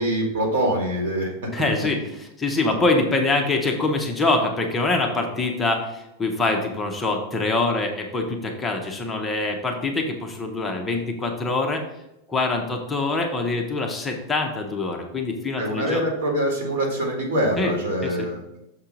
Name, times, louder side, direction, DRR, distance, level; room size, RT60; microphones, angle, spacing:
voice 1, 0.0-2.0 2.6-2.7 15.6-18.4, right 1 dB, 70° right, 1 dB, 2.3 m, -25 dB
voice 2, 1.5-11.8 12.3-16.0 17.6-17.7 18.2-18.3, left 3 dB, 10° left, 1 dB, 0.7 m, -24 dB
6.8 x 4.3 x 5.1 m, 0.89 s
supercardioid pair, 170°, 0 cm